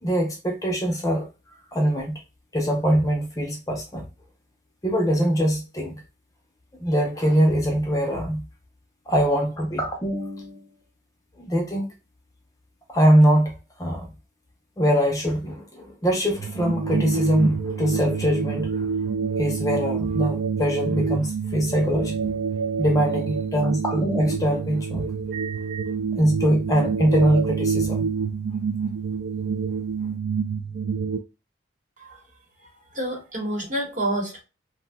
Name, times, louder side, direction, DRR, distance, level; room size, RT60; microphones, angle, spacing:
voice 1, 0.0-1.3 1.7-2.1 2.5-4.1 4.8-5.9 6.8-8.4 9.1-10.6 11.4-11.9 12.9-13.5 13.8-14.1 14.8-18.9 19.4-22.4 22.8-25.1 26.1-28.1, equal, 15° left, 0.5 m, -22 dB
sound 1, 16.3-31.2, right 6 dB, 60° right, 0.3 m, -27 dB
voice 2, 32.9-34.4, right 1 dB, 40° right, 1.0 m, -28 dB
2.6 x 2.1 x 3.3 m
head